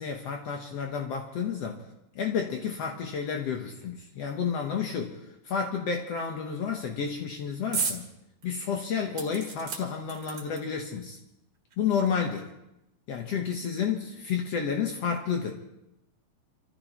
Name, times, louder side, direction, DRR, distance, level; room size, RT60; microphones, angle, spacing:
voice 1, 0.0-1.8 2.1-5.2 5.4-8.1 8.4-11.2 11.8-12.5 13.1-15.5, left 6 dB, 80° left, 1 dB, 1.4 m, -30 dB
sound 1, 7.7-8.0 8.4-8.5 9.2-10.8 11.7-11.8 12.1-12.2, right 5 dB, 40° right, 2.3 m, -33 dB
28.5 x 15.0 x 3.1 m, 0.86 s
omnidirectional pair, 4.7 m